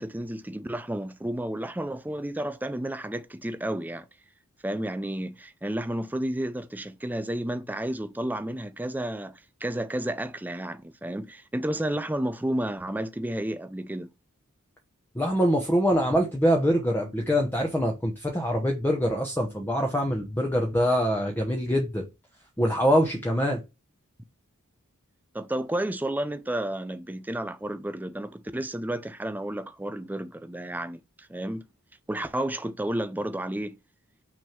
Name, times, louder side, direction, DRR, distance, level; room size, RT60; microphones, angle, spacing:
voice 1, 0.0-4.1 4.6-14.1 25.3-31.6 32.1-33.8, right 1 dB, 10° right, 0.5 m, -31 dB
voice 2, 15.1-22.0 22.6-23.6, equal, 10° left, 1.0 m, -24 dB
6.1 x 3.5 x 5.9 m
head